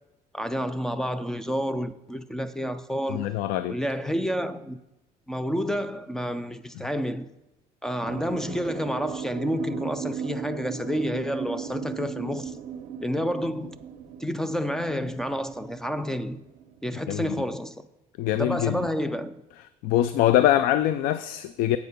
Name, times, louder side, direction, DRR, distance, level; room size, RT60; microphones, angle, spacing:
voice 1, 0.3-3.3 3.7-4.8 5.3-7.3 7.8-12.6 13.0-13.8 14.2-16.4 16.8-17.9 18.3-19.4, equal, 5° left, 0.3 m, -29 dB
voice 2, 3.1-3.8 17.1-17.3 18.2-18.8 19.8-21.8, left 12 dB, 85° left, 0.4 m, -23 dB
sound 1, 8.0-17.4, right 8 dB, 60° right, 0.5 m, -37 dB
8.2 x 6.6 x 5.2 m
cardioid pair, 160°, 14 cm